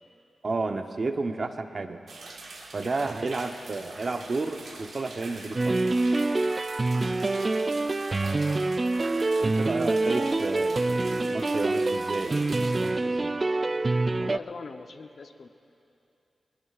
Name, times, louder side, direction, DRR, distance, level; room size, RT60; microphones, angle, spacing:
voice 1, 0.4-2.0 2.7-5.9 9.4-13.5, right 3 dB, 50° right, 6 dB, 0.9 m, -32 dB
sound 1, 2.1-12.9, right 3 dB, 80° right, 1.5 m, -44 dB
sound 2, 5.6-14.4, right 2 dB, 35° right, 0.3 m, -26 dB
voice 2, 6.9-7.2 14.2-15.5, left 4 dB, 60° left, 7 dB, 0.7 m, -42 dB
sound 3, 9.0-14.6, left 4 dB, 45° left, 1.2 m, -45 dB
22.0 x 19.5 x 2.5 m, 2.7 s
cardioid pair, 65°, 0 cm